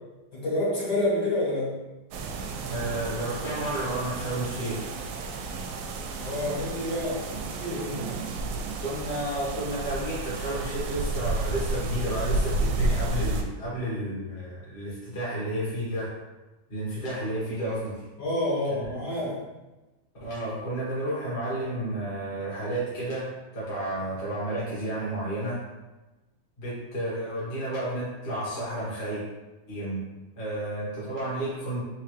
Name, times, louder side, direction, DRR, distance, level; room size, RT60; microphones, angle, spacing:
voice 1, 0.3-1.7 6.2-8.1 18.2-19.4, left 1 dB, 55° left, -7 dB, 2.1 m, -28 dB
sound 1, 2.1-13.4, right 3 dB, 85° right, 1.4 m, -31 dB
voice 2, 2.7-4.9 8.8-16.1 16.7-18.0 18.7-18.8 20.2-23.3 23.5-25.6 26.6-29.2 29.7-30.0 30.4-31.8, right 1 dB, 30° left, -8 dB, 1.4 m, -31 dB
4.5 x 3.5 x 3.2 m, 1.1 s
omnidirectional pair, 2.3 m